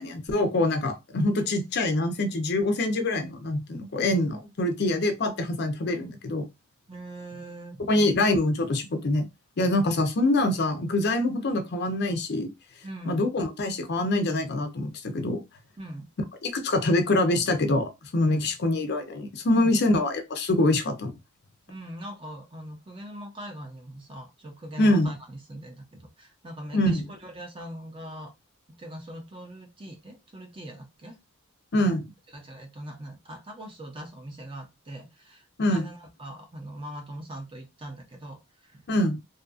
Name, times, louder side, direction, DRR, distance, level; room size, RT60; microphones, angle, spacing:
voice 1, 0.0-6.4 7.9-9.3 9.6-12.5 13.1-15.4 16.4-21.1 24.8-25.1 26.7-27.0 31.7-32.0 35.6-35.8 38.9-39.2, left 1 dB, 50° left, 0.5 m, -25 dB
voice 2, 6.9-7.9 12.8-13.2 15.8-16.1 18.2-18.5 19.5-19.8 21.7-28.3 28.8-31.2 31.8-31.9 32.3-38.8, right 1 dB, 25° right, 0.6 m, -41 dB
2.7 x 2.4 x 2.4 m
head